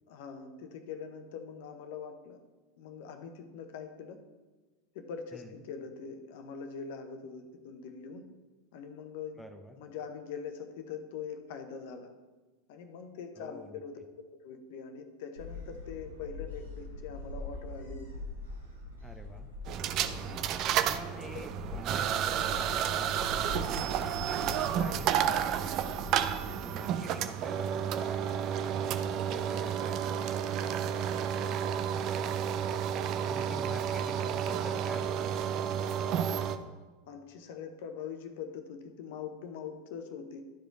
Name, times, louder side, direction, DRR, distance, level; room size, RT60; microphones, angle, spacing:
voice 1, 0.1-2.4 2.8-4.2 4.9-8.3 8.7-9.4 9.8-12.1 12.7-14.0 14.3-18.1 20.1-20.5 27.0-27.1 33.5-33.7 37.1-40.4, left 6 dB, 60° left, 6 dB, 0.9 m, -43 dB
voice 2, 5.3-5.6 9.4-9.8 13.4-13.8 19.0-19.5 20.8-26.3 26.6-28.8 29.3-32.8 33.1-35.5, left 1 dB, ahead, 4 dB, 0.9 m, -48 dB
Gull seagull, 15.4-26.6, left 2 dB, 90° right, 2.0 m, -43 dB
sound 1, 19.7-36.6, right 9 dB, 45° right, 0.5 m, -31 dB
12.0 x 5.0 x 3.9 m, 1.2 s
figure-of-eight pair, 85°, 0 cm